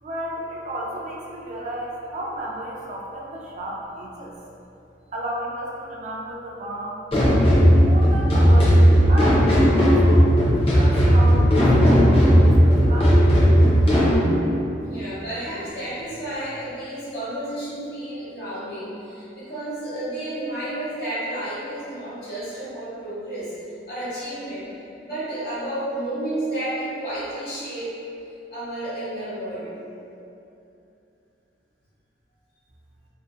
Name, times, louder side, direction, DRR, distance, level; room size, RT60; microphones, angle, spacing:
voice 1, 0.0-4.3 5.1-7.0 7.8-8.8 9.1-13.2, right 1 dB, 40° right, -3 dB, 0.3 m, -33 dB
sound 1, 7.1-14.2, equal, 30° left, 0.5 m, -15 dB
voice 2, 14.8-23.5 23.9-24.7 25.0-28.0 28.5-29.7, right 1 dB, 55° left, -11 dB, 1.1 m, -31 dB
2.6 x 2.3 x 2.3 m, 2.7 s
head